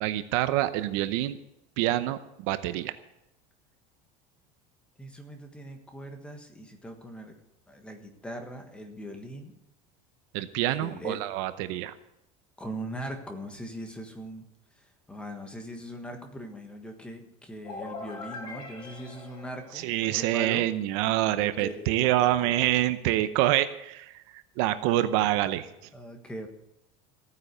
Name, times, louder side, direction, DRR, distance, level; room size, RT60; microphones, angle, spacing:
voice 1, 0.0-1.4 1.8-2.9 10.3-11.9 19.8-24.0 24.6-25.7, right 14 dB, 60° right, 11 dB, 0.8 m, -26 dB
voice 2, 5.0-7.3 7.7-9.5 10.8-11.2 12.6-14.4 14.8-20.7 21.3-22.6 25.9-26.5, equal, 5° left, 4 dB, 1.5 m, -40 dB
sound 1, 17.6-20.4, left 3 dB, 25° left, 2.3 m, -42 dB
15.5 x 9.5 x 6.7 m, 0.85 s
cardioid pair, 175°, 18 cm